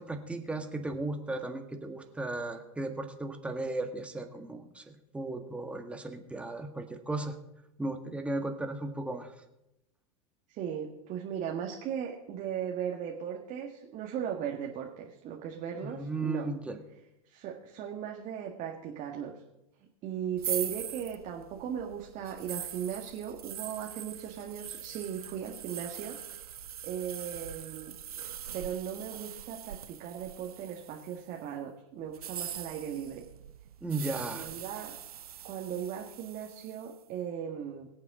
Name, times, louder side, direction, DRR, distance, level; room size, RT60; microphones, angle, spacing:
voice 1, 0.0-7.4 7.8-9.4 15.8-16.8 33.8-34.5, right 2 dB, 5° right, 4 dB, 1.7 m, -36 dB
voice 2, 10.5-16.5 17.3-19.4 20.0-26.2 26.8-27.9 28.5-33.2 34.3-34.9 35.4-37.9, right 8 dB, 45° right, 1 dB, 1.8 m, -37 dB
sound 1, 20.4-31.3 32.1-36.9, right 10 dB, 85° right, 0.5 m, -42 dB
22.5 x 8.6 x 3.8 m, 0.87 s
hypercardioid pair, 95°, 19 cm